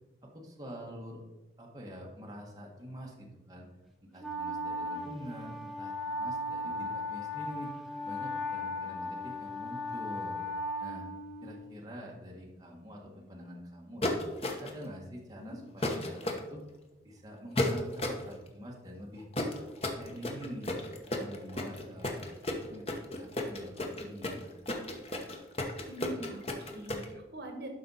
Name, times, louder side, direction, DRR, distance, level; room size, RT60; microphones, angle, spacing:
voice 1, 0.2-1.2 1.6-3.7 4.0-7.7 8.0-10.3 10.8-11.1 11.4-14.2 14.6-16.6 17.0-19.2 19.9-20.7 21.0-22.2 22.5-24.4, equal, 20° right, -2 dB, 1.4 m, -45 dB
Wind instrument woodwind instrument, 4.2-11.7, left 1 dB, ahead, 0.9 m, -37 dB
sound 1, 14.0-14.8 15.8-16.4 17.6-18.2 19.3-27.0, left 1 dB, 35° left, 1.0 m, -33 dB
voice 2, 25.9-27.7, right 1 dB, 70° right, 4 dB, 1.4 m, -43 dB
12.0 x 5.2 x 4.1 m, 1.0 s
head